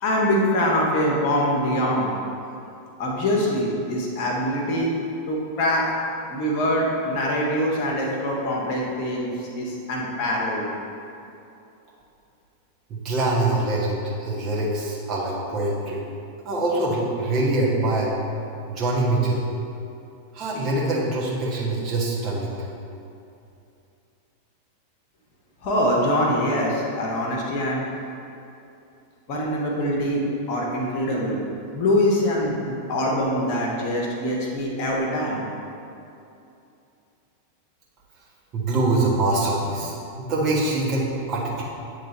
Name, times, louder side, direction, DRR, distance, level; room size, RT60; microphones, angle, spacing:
voice 1, 0.0-2.1 3.0-4.9 5.3-5.9 6.3-10.7 25.6-27.8 29.3-30.2 30.5-31.4 31.7-35.4, equal, 45° left, -2 dB, 1.2 m, -24 dB
voice 2, 12.9-16.0 16.4-18.1 18.7-19.4 20.3-22.6 38.5-41.6, right 2 dB, 35° right, -5 dB, 1.4 m, -24 dB
9.1 x 3.3 x 4.1 m, 2.7 s
figure-of-eight pair, 90°, 0 cm